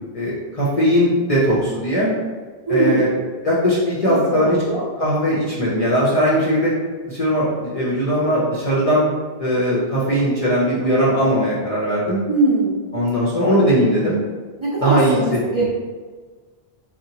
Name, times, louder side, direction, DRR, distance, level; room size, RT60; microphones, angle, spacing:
voice 1, 0.1-2.1 2.7-3.1 3.4-4.6 5.0-6.7 7.1-9.0 9.4-12.2 12.9-14.2 14.8-15.2 15.6-15.7, equal, 45° left, -7 dB, 0.5 m, -19 dB
voice 2, 2.7-3.1 4.1-4.8 12.3-12.8 14.6-15.6, right 2 dB, 45° right, -9 dB, 0.4 m, -21 dB
2.8 x 2.1 x 2.7 m, 1.4 s
omnidirectional pair, 1.1 m